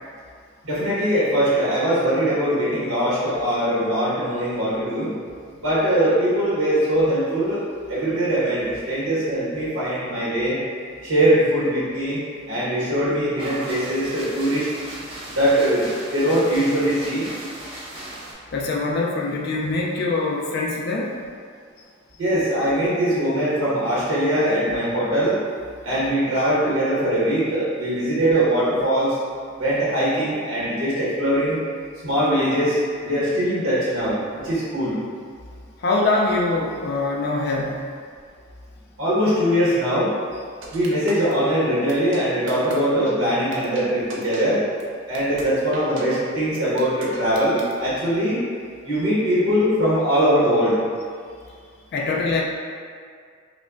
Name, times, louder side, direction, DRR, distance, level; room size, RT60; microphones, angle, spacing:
voice 1, 0.6-5.1 5.6-7.6 7.9-10.6 11.0-12.2 12.5-14.7 15.3-17.2 22.2-25.4 25.8-29.1 29.6-31.6 32.0-35.0 39.0-40.1 40.7-44.6 45.1-48.4 48.8-50.8, equal, 90° right, -9 dB, 1.1 m, -21 dB
sound 1, 13.3-18.3, right 1 dB, 25° right, 0.7 m, -37 dB
voice 2, 18.5-21.2 35.8-37.8 51.9-52.4, left 3 dB, 50° left, -1 dB, 0.3 m, -23 dB
sound 2, 40.6-41.3 41.9-42.2 42.5-42.8 43.1-43.2 43.5-43.8 44.1-44.4 44.8-44.9 45.1-45.4 45.7-46.0 46.5-47.7, right 3 dB, 65° right, 0.5 m, -39 dB
5.1 x 2.1 x 2.4 m, 2.1 s
head